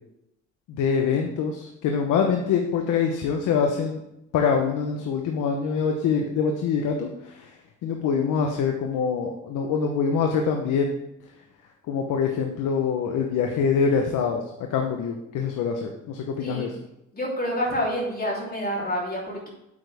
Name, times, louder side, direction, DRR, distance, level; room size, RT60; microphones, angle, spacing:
voice 1, 0.7-4.0 4.3-7.5 7.8-10.9 11.9-14.4 14.7-16.8, left 6 dB, 85° left, 3 dB, 1.0 m, -24 dB
voice 2, 17.1-19.5, equal, 30° left, -4 dB, 3.5 m, -28 dB
8.7 x 8.0 x 3.5 m, 0.84 s
cardioid pair, 90°, 30 cm